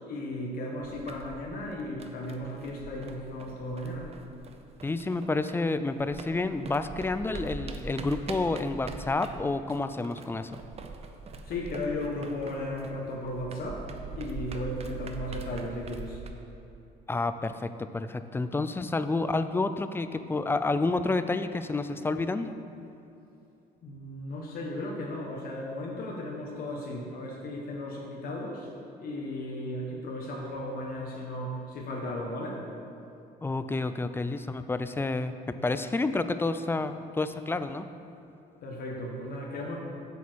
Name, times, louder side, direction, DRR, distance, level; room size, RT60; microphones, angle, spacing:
voice 1, 0.1-4.1 11.5-13.8 14.1-16.2 23.8-28.7 29.0-32.6 38.6-39.8, left 1 dB, 60° left, -1 dB, 1.3 m, -35 dB
sound 1, 0.8-5.7 6.0-16.3, right 4 dB, 40° right, 0.7 m, -43 dB
voice 2, 4.8-10.6 17.1-22.6 33.4-37.9, left 3 dB, 15° left, 11 dB, 0.4 m, -29 dB
8.1 x 7.1 x 4.6 m, 2.8 s
cardioid pair, 110°, 17 cm